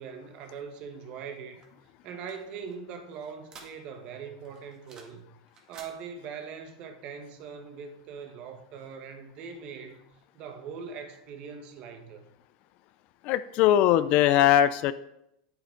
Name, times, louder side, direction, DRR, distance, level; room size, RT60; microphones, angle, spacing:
voice 1, 0.0-1.6 2.0-5.3 5.7-10.0 10.3-12.2, right 6 dB, 45° right, 1.4 m, -41 dB
sound 1, 1.6-4.1 4.4-5.2 5.5-5.9, right 5 dB, 30° right, 2.0 m, -52 dB
voice 2, 13.2-14.9, left 11 dB, 50° left, 0.4 m, -21 dB
8.5 x 8.0 x 3.8 m
hypercardioid pair, 125°, 3 cm